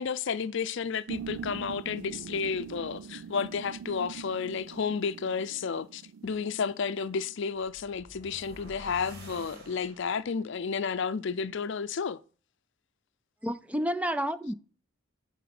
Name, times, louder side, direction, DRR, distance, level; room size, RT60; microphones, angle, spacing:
voice 1, 0.0-12.2, left 5 dB, 65° left, 0.5 m, -32 dB
sound 1, 1.1-7.3, right 7 dB, 85° right, 0.3 m, -43 dB
sound 2, 7.6-10.4, equal, 50° right, 3.7 m, -49 dB
voice 2, 13.4-14.5, equal, 5° right, 0.4 m, -30 dB
11.0 x 4.2 x 5.9 m
head